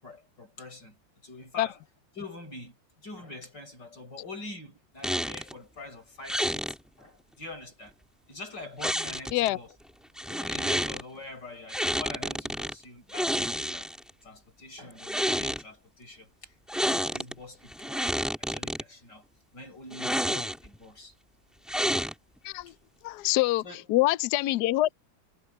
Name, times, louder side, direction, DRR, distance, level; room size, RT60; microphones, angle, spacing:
voice 1, 0.0-1.8 2.2-6.7 7.0-7.9 8.3-9.8 10.3-13.9 14.2-19.3 19.5-21.1 22.7-22.8 23.6-23.9, left 2 dB, 60° left, 7.4 m, -45 dB
sound 1, 5.0-5.5 6.3-6.8 8.8-9.5 10.2-11.0 11.7-12.7 13.1-14.1 14.9-15.6 16.7-17.3 17.7-18.8 19.9-20.8 21.7-22.4, equal, ahead, 2.3 m, -29 dB
voice 2, 23.0-23.6 23.9-24.9, left 17 dB, 75° left, 0.9 m, -25 dB
omnidirectional pair, 2.2 m